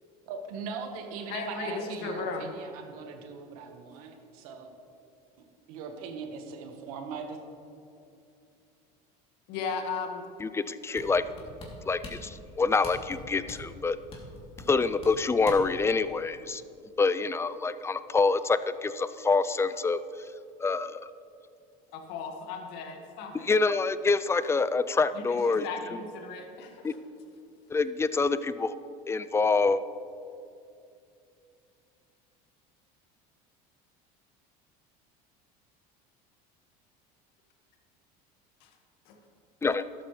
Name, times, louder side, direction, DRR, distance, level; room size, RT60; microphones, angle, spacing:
voice 1, 0.3-4.7 5.7-7.4, right 5 dB, 85° right, 4 dB, 1.5 m, -40 dB
voice 2, 1.3-2.5 9.5-10.2 21.9-23.5 25.1-27.0 38.6-38.7 39.1-39.2, left 4 dB, 70° left, 3 dB, 1.7 m, -36 dB
voice 3, 10.4-11.2 11.9-14.0 14.7-16.6 17.0-20.0 20.6-21.0 23.5-25.7 26.8-26.9 27.7-28.8 29.1-29.8 39.6-39.8, left 4 dB, 15° left, 14 dB, 0.4 m, -26 dB
sound 1, 10.9-15.8 16.2-16.3, left 2 dB, 30° left, 3.0 m, -44 dB
12.5 x 12.5 x 3.3 m, 2.5 s
supercardioid pair, 105°, 18 cm